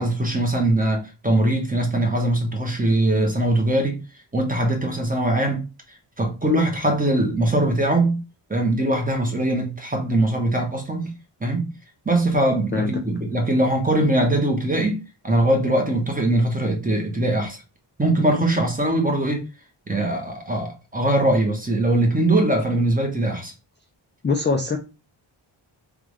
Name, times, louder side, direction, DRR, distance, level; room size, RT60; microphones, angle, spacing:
voice 1, 0.0-4.0 4.3-5.6 6.2-8.2 8.5-11.1 11.4-11.7 12.0-17.6 18.0-19.4 19.9-23.5, right 1 dB, 15° right, 1.1 m, -21 dB
voice 2, 24.2-24.8, left 4 dB, 25° left, 0.4 m, -22 dB
3.6 x 2.5 x 3.1 m
wide cardioid pair, 75°, 49 cm